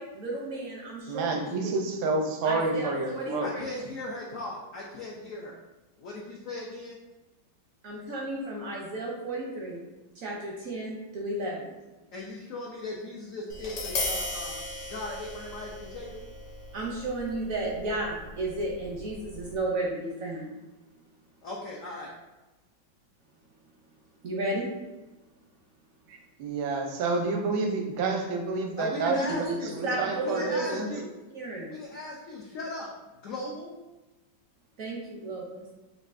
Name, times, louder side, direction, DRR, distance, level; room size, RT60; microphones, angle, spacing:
voice 1, 0.0-1.7 2.4-3.7 7.8-9.8 10.1-11.7 16.7-20.6 24.2-24.7 29.1-29.5 29.8-30.7 31.3-31.8 34.8-35.6, right 2 dB, 70° right, -2 dB, 0.8 m, -33 dB
voice 2, 1.1-3.5 26.1-29.4 29.7-30.9, right 3 dB, 85° right, 3 dB, 1.4 m, -29 dB
voice 3, 3.4-5.5 6.0-7.0 12.1-14.6 14.9-16.2 21.4-22.1 28.8-29.8 30.2-31.1 31.7-32.9 33.2-33.7, left 2 dB, 80° left, -3 dB, 0.7 m, -38 dB
Tap, 13.5-19.6, left 2 dB, 60° left, 1.4 m, -37 dB
6.3 x 2.5 x 2.5 m, 1.1 s
omnidirectional pair, 2.1 m